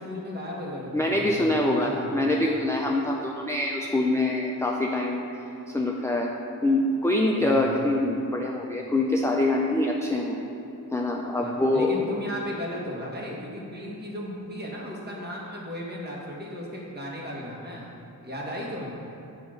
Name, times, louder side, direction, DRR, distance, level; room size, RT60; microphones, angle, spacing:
voice 1, 0.0-2.5 7.4-7.8 11.4-17.9 18.2-19.0, equal, 25° right, -3 dB, 1.5 m, -36 dB
voice 2, 0.9-5.2 5.7-6.3 6.6-10.4 10.9-12.0, left 1 dB, 10° left, -1 dB, 0.4 m, -25 dB
8.4 x 3.1 x 6.2 m, 3.0 s
cardioid pair, 90°, 36 cm